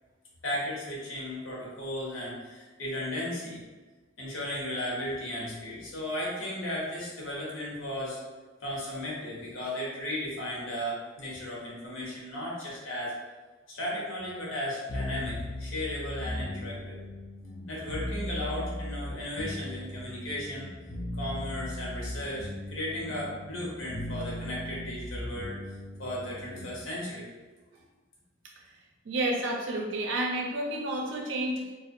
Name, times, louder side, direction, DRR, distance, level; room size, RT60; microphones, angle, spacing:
voice 1, 0.4-3.6 4.2-8.2 8.6-13.1 13.7-17.0 17.7-20.7 21.2-25.6 26.0-27.3, left 1 dB, 90° left, -5 dB, 0.9 m, -35 dB
sound 1, 14.9-26.8, left 1 dB, 20° left, 0.4 m, -38 dB
voice 2, 29.0-31.7, right 1 dB, 70° right, 0 dB, 0.5 m, -30 dB
2.5 x 2.1 x 2.6 m, 1.3 s
head